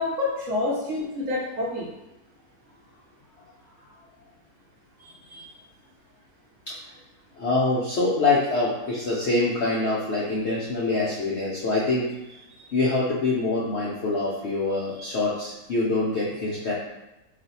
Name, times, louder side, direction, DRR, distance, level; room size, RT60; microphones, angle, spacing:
voice 1, 0.0-1.9 5.0-5.5 15.0-15.1, left 2 dB, 65° right, -4 dB, 0.9 m, -28 dB
voice 2, 7.4-12.0 12.7-16.7, left 3 dB, 70° left, -6 dB, 0.6 m, -25 dB
2.5 x 2.4 x 4.0 m, 0.99 s
omnidirectional pair, 1.7 m